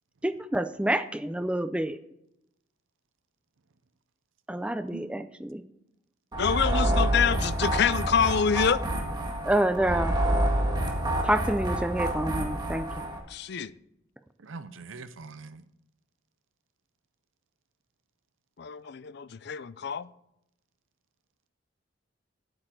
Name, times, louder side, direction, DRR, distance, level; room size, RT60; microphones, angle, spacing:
voice 1, 0.2-2.0 4.5-5.6 9.5-10.2 11.2-12.9, right 1 dB, 5° right, 0.5 m, -28 dB
voice 2, 4.9-5.3 14.4-15.6, right 3 dB, 80° right, 0.6 m, -43 dB
sound 1, 6.3-13.2, right 1 dB, 20° right, 1.9 m, -28 dB
voice 3, 6.4-8.8 13.3-13.7 18.6-20.1, left 7 dB, 55° left, 0.5 m, -26 dB
9.0 x 8.8 x 5.9 m
head